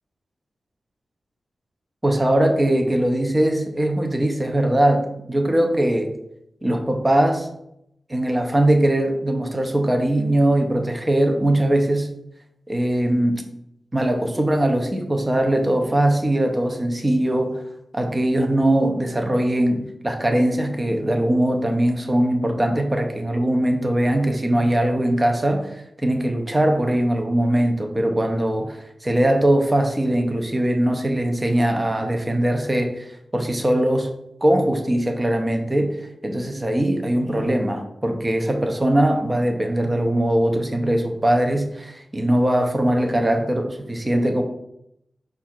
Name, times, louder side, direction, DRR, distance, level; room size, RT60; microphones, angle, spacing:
voice 1, 2.0-6.1 6.6-7.5 8.1-12.1 12.7-13.4 13.9-17.6 17.9-34.1 34.4-44.4, right 1 dB, 20° right, 4 dB, 0.5 m, -21 dB
4.9 x 2.4 x 4.3 m, 0.78 s
wide cardioid pair, 125°, 0 cm